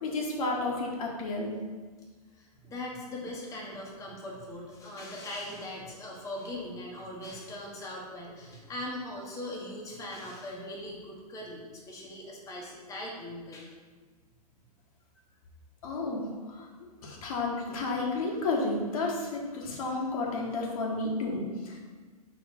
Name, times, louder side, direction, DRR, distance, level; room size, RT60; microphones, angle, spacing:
voice 1, 0.0-1.6 15.8-16.7 17.0-21.8, left 2 dB, 60° left, -1 dB, 1.4 m, -31 dB
voice 2, 2.3-13.7, left 1 dB, 15° left, -3 dB, 1.2 m, -40 dB
5.0 x 4.2 x 4.4 m, 1.4 s
hypercardioid pair, 110°, 20 cm